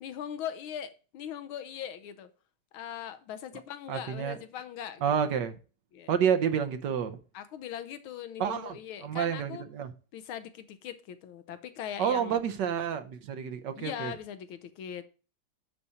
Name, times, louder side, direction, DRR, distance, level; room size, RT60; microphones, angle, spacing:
voice 1, 0.0-2.3 2.7-5.1 5.9-6.1 7.3-9.6 10.1-12.4 13.8-15.0, left 9 dB, 75° left, 1.6 m, -40 dB
voice 2, 3.9-4.4 5.0-5.6 6.1-7.2 8.4-9.9 12.0-14.1, right 8 dB, 65° right, 1.3 m, -29 dB
9.9 x 4.3 x 4.9 m
omnidirectional pair, 2.4 m